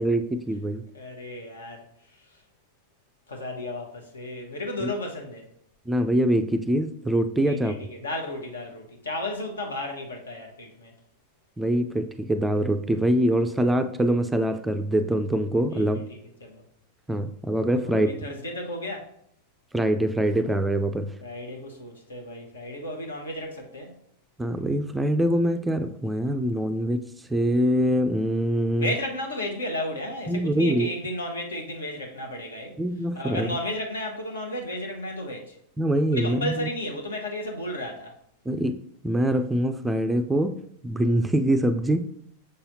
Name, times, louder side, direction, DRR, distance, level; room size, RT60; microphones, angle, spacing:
voice 1, 0.0-0.8 4.8-4.9 5.9-7.7 11.6-16.0 17.1-18.1 19.7-21.1 24.4-27.0 27.3-28.9 30.3-30.9 32.8-33.5 35.8-36.7 38.5-38.8 39.0-40.6 40.8-42.1, right 1 dB, 10° right, 0.4 m, -24 dB
voice 2, 0.9-1.8 2.1-2.4 3.3-5.5 7.5-10.9 15.7-16.6 17.8-19.1 21.2-23.9 28.8-32.8 33.1-35.6 36.1-38.1, left 1 dB, 70° left, 1.2 m, -33 dB
6.7 x 5.5 x 2.8 m
figure-of-eight pair, 90°, 0 cm